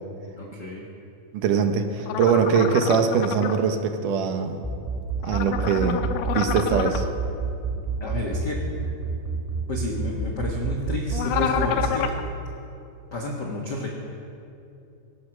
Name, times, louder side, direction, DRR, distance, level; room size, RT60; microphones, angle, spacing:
voice 1, 0.3-0.8 8.0-8.6 9.7-12.1 13.1-13.9, left 2 dB, 55° left, -2 dB, 1.2 m, -30 dB
voice 2, 1.3-4.7 5.2-6.0 6.3-7.1, right 6 dB, 70° right, 6 dB, 2.3 m, -22 dB
sound 1, 2.1-3.6 5.2-7.0 11.1-12.2, left 9 dB, 85° left, 2.6 m, -28 dB
sound 2, 4.6-11.9, right 4 dB, 10° right, 0.8 m, -28 dB
23.5 x 10.0 x 6.2 m, 2.7 s
omnidirectional pair, 4.3 m